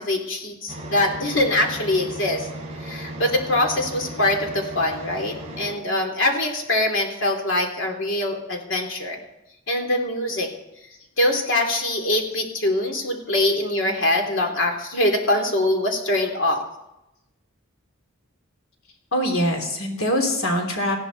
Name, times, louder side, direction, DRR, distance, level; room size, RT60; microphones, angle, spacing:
voice 1, 0.0-2.5 2.8-9.2 9.7-10.5 11.2-16.6, left 1 dB, 60° left, 2 dB, 3.2 m, -23 dB
sound 1, 0.7-5.7, right 1 dB, 30° right, 4.4 m, -36 dB
voice 2, 19.1-21.0, equal, 80° left, 3 dB, 3.2 m, -23 dB
19.0 x 15.0 x 4.2 m, 0.90 s
head